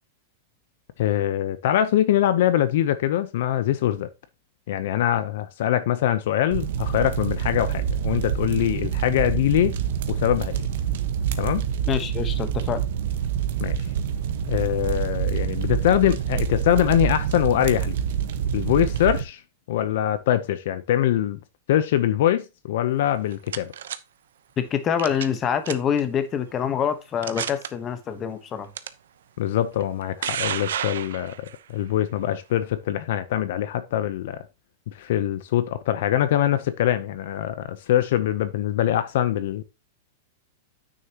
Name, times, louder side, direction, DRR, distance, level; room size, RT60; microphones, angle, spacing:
voice 1, 1.0-4.1 4.7-9.8 10.1-10.6 11.4-11.6 13.6-13.8 14.5-18.0 18.5-19.4 19.7-21.4 21.7-23.7 29.4-31.4 31.7-34.4 34.9-39.6, left 11 dB, 55° left, 0.7 m, -23 dB
sound 1, 6.5-19.2, right 9 dB, 55° right, 1.2 m, -26 dB
voice 2, 11.9-12.8 24.6-28.7, left 8 dB, 20° left, 1.0 m, -26 dB
sound 2, 23.1-24.0 25.0-25.4 25.7-26.0 26.6-26.7 27.2-27.7 28.8-28.9 29.8-31.6, right 9 dB, 85° right, 0.8 m, -30 dB
9.3 x 6.6 x 2.9 m
supercardioid pair, 170°, 0 cm